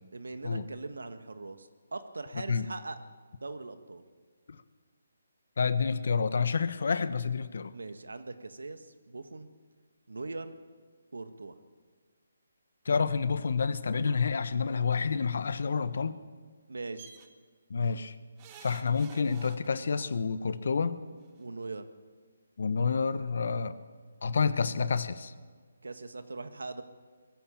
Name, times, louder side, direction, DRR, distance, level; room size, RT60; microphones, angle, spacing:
voice 1, 0.1-3.0 3.4-4.0 7.7-9.5 10.1-10.6 11.1-11.5 16.7-17.1 21.4-21.8 25.8-26.8, right 3 dB, 85° right, 9 dB, 1.8 m, -41 dB
voice 2, 5.6-7.7 12.9-16.2 17.7-18.1 18.6-21.0 22.6-23.8 24.2-25.3, left 5 dB, 65° left, 13 dB, 1.2 m, -29 dB
sound 1, 17.0-17.3 18.4-20.1 21.3-21.4 21.6-21.7, right 7 dB, 25° right, 1.5 m, -50 dB
21.5 x 14.5 x 8.7 m, 1.5 s
hypercardioid pair, 160°, 0 cm